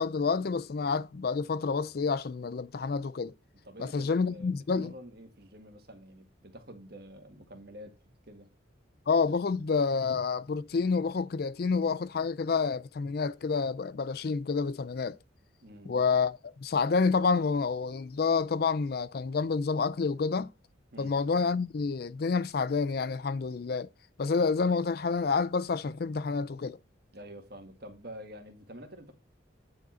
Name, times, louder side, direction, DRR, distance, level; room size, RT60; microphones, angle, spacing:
voice 1, 0.0-3.3 3.8-4.9 9.1-15.2 15.9-20.5 21.0-23.9 24.2-26.8, left 4 dB, 50° left, 0.4 m, -28 dB
voice 2, 3.6-8.0 8.3-8.5 15.6-16.0 20.9-21.2 27.1-29.1, equal, 50° right, 1.8 m, -48 dB
9.4 x 5.0 x 4.3 m
head